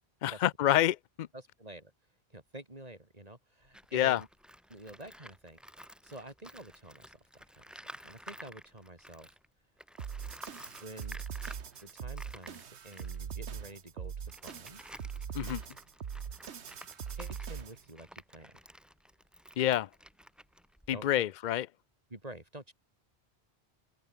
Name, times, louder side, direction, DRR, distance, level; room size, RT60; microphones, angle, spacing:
voice 1, 0.2-1.3 3.9-4.2 15.3-15.6 19.6-19.9 20.9-21.7, left 12 dB, 55° left, 0.6 m, -28 dB
voice 2, 1.3-1.9 2.3-4.3 4.7-7.6 7.9-9.3 10.8-11.2 11.8-14.8 17.1-18.5 20.9-21.2 22.1-22.7, right 1 dB, 35° right, 3.6 m, -49 dB
Tools, 3.6-9.5 9.8-21.2, equal, ahead, 0.6 m, -52 dB
sound 1, 10.0-17.9, right 7 dB, 90° right, 1.4 m, -41 dB
omnidirectional pair, 1.1 m